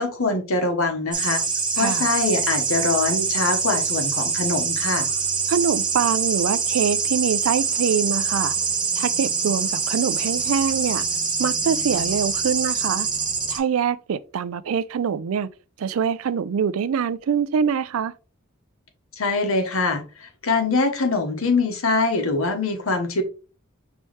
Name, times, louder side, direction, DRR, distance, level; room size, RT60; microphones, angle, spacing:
voice 1, 0.0-1.4 1.8-5.1 19.2-23.2, left 3 dB, 85° left, 1.1 m, -23 dB
sound 1, 1.1-13.6, right 5 dB, 20° right, 0.7 m, -24 dB
voice 2, 1.8-2.1 5.5-8.6 9.0-11.0 11.4-13.1 13.5-15.5 15.8-18.1, right 7 dB, 85° right, 0.4 m, -24 dB
5.5 x 3.0 x 3.2 m
head